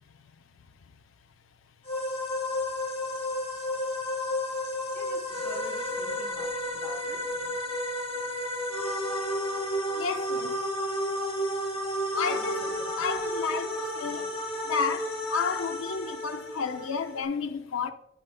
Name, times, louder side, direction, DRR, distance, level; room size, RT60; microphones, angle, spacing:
sound 1, 1.9-17.2, left 1 dB, 25° left, 0.8 m, -32 dB
voice 1, 4.9-7.2 12.2-12.9, equal, 5° left, 2.0 m, -46 dB
voice 2, 9.9-10.6 12.1-12.6 13.0-14.3 14.6-17.9, left 5 dB, 75° left, 0.5 m, -32 dB
9.6 x 5.0 x 2.2 m
head